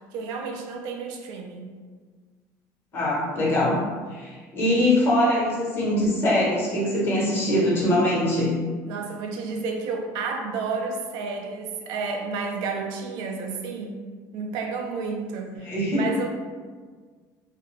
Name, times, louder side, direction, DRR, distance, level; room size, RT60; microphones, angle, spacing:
voice 1, 0.1-1.8 8.9-14.0 14.3-16.3, right 4 dB, 75° right, 3 dB, 0.4 m, -31 dB
voice 2, 2.9-3.8 4.1-8.5 15.6-16.0, left 1 dB, 30° left, -5 dB, 1.1 m, -22 dB
2.7 x 2.4 x 3.2 m, 1.5 s
cardioid pair, 135°, 7 cm